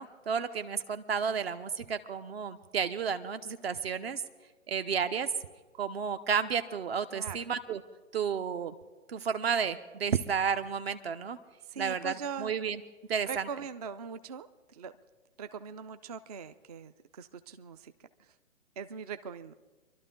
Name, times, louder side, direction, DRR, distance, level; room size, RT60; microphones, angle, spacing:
voice 1, 0.0-4.2 4.7-5.3 5.8-7.8 8.1-8.7 9.1-11.4 11.8-12.8 13.1-13.5, right 6 dB, 50° right, 10 dB, 0.9 m, -32 dB
voice 2, 11.7-12.5 13.3-14.9 15.4-17.9 18.8-19.5, right 6 dB, 30° right, 11 dB, 0.5 m, -41 dB
25.5 x 12.0 x 3.8 m, 1.3 s
hypercardioid pair, 145°, 39 cm